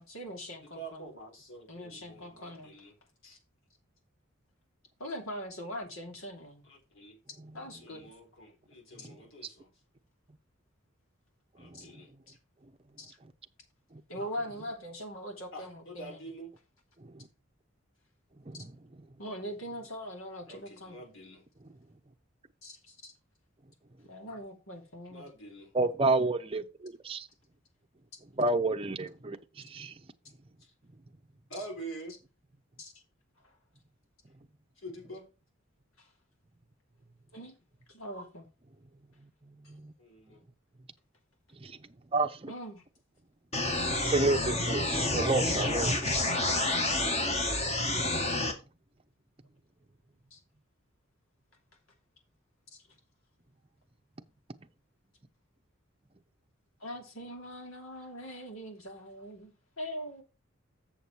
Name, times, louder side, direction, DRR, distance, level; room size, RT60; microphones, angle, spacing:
voice 1, 0.0-1.1 1.7-2.7 5.0-6.6 7.5-8.0 9.0-9.1 11.7-11.9 13.0-13.1 14.1-16.2 19.2-21.0 22.6-23.1 24.0-25.3 25.8-25.9 32.8-32.9 37.3-37.5 37.9-38.5 42.5-42.8 50.3-50.4 52.7-52.8 56.8-60.2, equal, 85° left, 2.7 m, -42 dB
voice 2, 0.6-3.0 3.2-3.4 6.6-7.2 7.7-9.7 11.6-12.1 15.5-16.5 20.5-21.5 25.1-25.7 31.5-32.2 34.8-35.3 40.0-40.4 45.6-46.2, right 2 dB, 70° left, 3.8 m, -46 dB
voice 3, 25.7-27.3 28.4-29.4 29.7-29.9 39.7-39.9 41.6-41.7 42.1-42.5 44.0-45.9, right 3 dB, 25° right, 0.7 m, -29 dB
sound 1, 43.5-48.5, left 2 dB, 35° left, 1.7 m, -29 dB
7.2 x 7.0 x 4.5 m
head